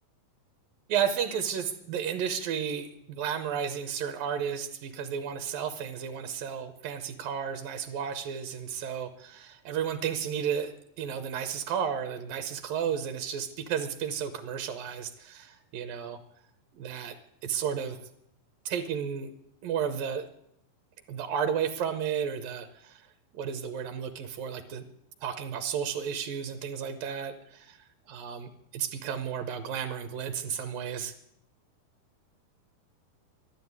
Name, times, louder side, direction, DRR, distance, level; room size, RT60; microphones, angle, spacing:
voice 1, 0.9-16.2 16.7-17.2 17.4-18.0 18.7-19.3 19.6-20.3 21.1-23.0 23.4-24.8 25.2-27.8 28.1-31.1, right 8 dB, 75° right, 9 dB, 2.5 m, -33 dB
12.0 x 11.5 x 9.5 m, 0.76 s
omnidirectional pair, 4.3 m